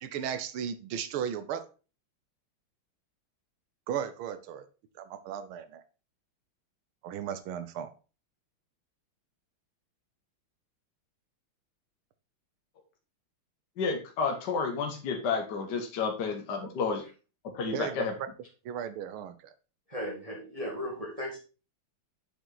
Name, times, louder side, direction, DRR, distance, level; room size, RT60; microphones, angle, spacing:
voice 1, 0.0-1.6 3.9-4.7 5.0-5.8 7.0-7.9 17.7-18.1 18.7-19.5, right 8 dB, 80° right, 11 dB, 1.7 m, -35 dB
voice 2, 13.8-17.0 17.4-18.1, left 5 dB, 55° left, 3 dB, 1.6 m, -31 dB
voice 3, 19.9-21.4, equal, 20° right, -2 dB, 1.7 m, -36 dB
7.8 x 5.1 x 4.0 m, 0.35 s
omnidirectional pair, 2.3 m